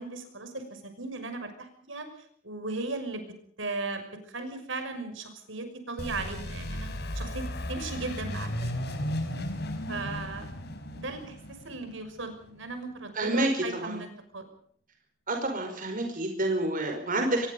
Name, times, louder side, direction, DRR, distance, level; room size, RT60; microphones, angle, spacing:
voice 1, 0.0-2.1 2.4-3.2 3.6-6.9 7.1-8.5 8.9-9.0 9.9-10.5 10.9-14.4, right 3 dB, 65° right, 7 dB, 6.0 m, -37 dB
sound 1, 6.0-12.6, left 1 dB, 55° left, 5.2 m, -35 dB
voice 2, 13.1-14.0 15.3-17.5, right 2 dB, 40° right, 4 dB, 5.1 m, -28 dB
25.5 x 22.5 x 5.4 m, 0.62 s
head